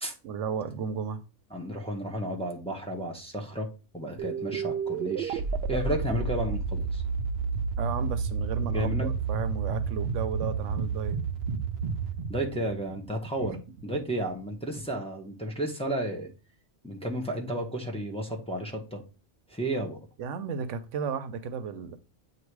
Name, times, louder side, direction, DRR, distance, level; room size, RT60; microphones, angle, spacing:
voice 1, 0.2-1.2 7.8-11.2 13.4-13.5 13.9-14.0 20.2-22.0, right 6 dB, 85° right, 1.0 m, -34 dB
voice 2, 1.5-3.7 3.9-5.4 5.7-7.0 8.7-9.1 12.3-13.6 13.8-16.3 16.8-19.0 19.5-20.0, right 1 dB, 5° left, 1.0 m, -32 dB
sound 1, 4.2-13.5, right 5 dB, 65° right, 0.7 m, -31 dB
8.2 x 2.8 x 4.6 m
omnidirectional pair, 1.2 m